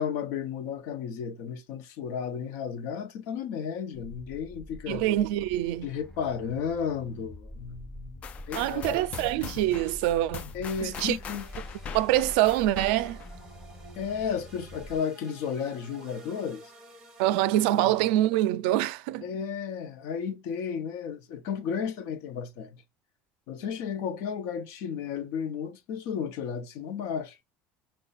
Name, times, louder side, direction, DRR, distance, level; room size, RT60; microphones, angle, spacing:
voice 1, 0.0-5.1 5.8-8.2 8.5-9.0 10.5-11.4 14.0-16.6 17.8-17.9 19.2-22.8 23.5-27.4, left 7 dB, 60° left, 0.7 m, -33 dB
sound 1, 3.9-15.0, equal, 10° left, 1.2 m, -46 dB
voice 2, 4.9-5.9 8.5-10.5 10.8-11.2 11.9-13.2 17.2-19.2, right 14 dB, 85° right, 0.4 m, -25 dB
sound 2, 8.2-13.3, left 7 dB, 30° left, 0.3 m, -41 dB
sound 3, 11.2-18.3, right 2 dB, 10° right, 1.1 m, -52 dB
5.5 x 2.2 x 4.0 m
cardioid pair, 180°, 5 cm